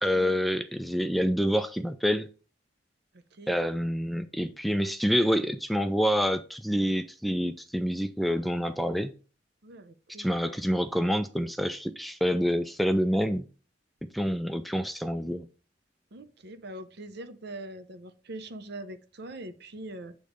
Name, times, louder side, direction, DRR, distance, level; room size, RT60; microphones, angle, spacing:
voice 1, 0.0-2.3 3.5-9.1 10.2-13.4 14.1-15.5, equal, ahead, 0.3 m, -27 dB
voice 2, 9.6-10.4 16.1-20.1, right 1 dB, 60° right, 0.8 m, -42 dB
8.4 x 3.1 x 5.1 m
head